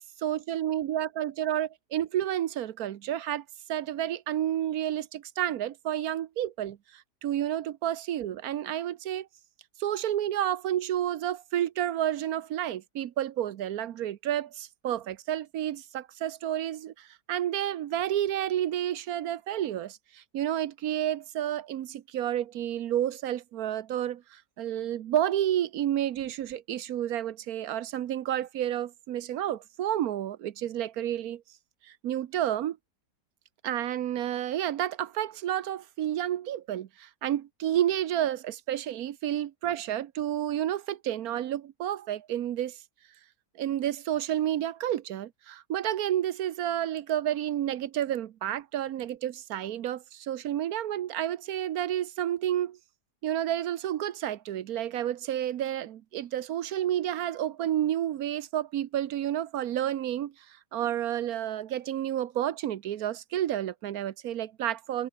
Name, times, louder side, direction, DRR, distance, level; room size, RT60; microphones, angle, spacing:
voice 1, 0.0-3.4 3.7-9.3 9.8-31.4 31.9-32.8 33.6-42.8 43.6-52.8 53.2-65.1, right 11 dB, 65° right, 1.2 m, -30 dB
omnidirectional pair, 1.8 m